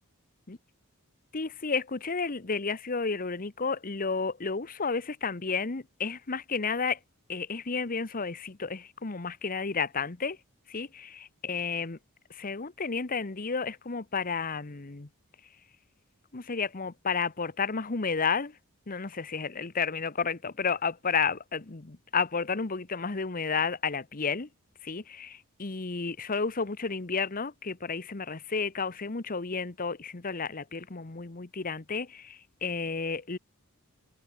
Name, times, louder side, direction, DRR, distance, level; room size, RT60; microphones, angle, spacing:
voice 1, 1.3-7.0 7.3-10.4 10.7-12.0 12.3-15.1 16.3-18.6 18.9-24.5 24.8-33.4, left 5 dB, 40° left, 1.0 m, -32 dB
head